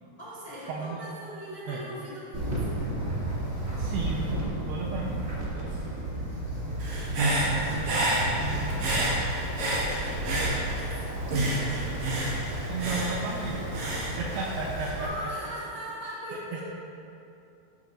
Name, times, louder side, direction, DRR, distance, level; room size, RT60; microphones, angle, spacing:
voice 1, 0.0-2.9 5.4-6.4 9.6-11.2 15.0-16.6, equal, 75° left, -9 dB, 0.8 m, -41 dB
voice 2, 0.7-1.0 1.7-1.8 3.8-4.2 4.7-6.1 7.2-9.4 12.7-15.3 16.5-16.6, right 3 dB, 80° right, -3 dB, 2.4 m, -35 dB
Wind, 2.3-15.1, right 1 dB, 35° right, 1.2 m, -33 dB
Human voice / Breathing, 6.8-11.0 11.3-14.9, right 1 dB, 55° right, 2.3 m, -29 dB
13.5 x 11.0 x 2.6 m, 2.7 s
omnidirectional pair, 5.5 m